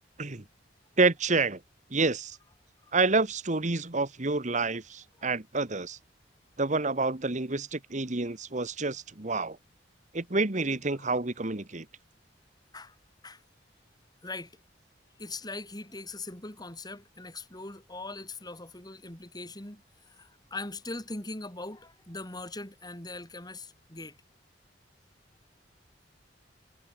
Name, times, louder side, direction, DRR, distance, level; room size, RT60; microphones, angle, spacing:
voice 1, 1.0-1.6 1.9-2.4 2.9-6.0 6.6-9.6 10.1-11.8, right 3 dB, 40° right, 1.5 m, -28 dB
voice 2, 14.2-14.6 15.2-24.2, left 2 dB, 20° left, 4.8 m, -41 dB
head